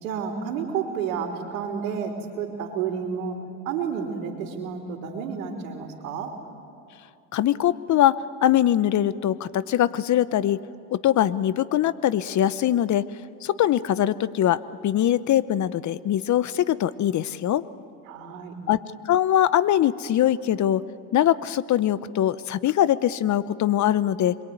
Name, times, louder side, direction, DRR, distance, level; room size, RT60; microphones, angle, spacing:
voice 1, 0.0-6.3 18.1-18.5, right 6 dB, 90° right, 1 dB, 3.5 m, -31 dB
voice 2, 7.3-10.6 10.9-13.0 13.4-17.6 18.7-20.8 21.1-24.4, left 11 dB, 45° left, 16 dB, 1.0 m, -22 dB
27.0 x 22.5 x 9.5 m, 2.5 s
supercardioid pair, 85°, 39 cm